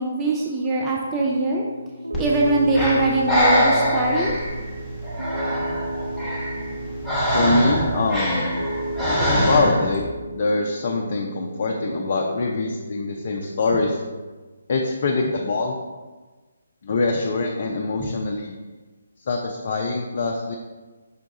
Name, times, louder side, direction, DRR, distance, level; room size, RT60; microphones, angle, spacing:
voice 1, 0.0-1.6 2.2-4.3 18.0-18.1, right 2 dB, 15° right, -3 dB, 0.4 m, -22 dB
Piano, 1.2-14.3, right 1 dB, 85° right, 0.3 m, -34 dB
Breathing, 2.1-10.0, equal, ahead, 0.9 m, -24 dB
voice 2, 7.3-8.4 9.5-14.0 14.7-15.8 16.8-18.6 19.2-20.5, left 3 dB, 45° left, 0 dB, 0.4 m, -24 dB
5.6 x 2.3 x 3.9 m, 1.3 s
figure-of-eight pair, 145°, 0 cm